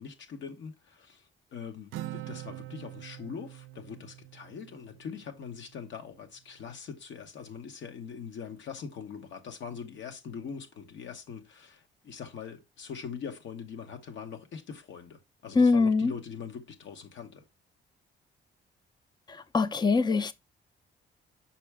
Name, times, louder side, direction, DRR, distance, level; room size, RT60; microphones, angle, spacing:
voice 1, 0.0-17.4, left 6 dB, 65° left, 1.1 m, -42 dB
Acoustic guitar, 1.9-5.6, right 14 dB, 80° right, 0.4 m, -43 dB
voice 2, 15.6-16.1 19.3-20.3, left 4 dB, 20° left, 0.5 m, -23 dB
6.0 x 4.7 x 3.4 m
cardioid pair, 90°, 20 cm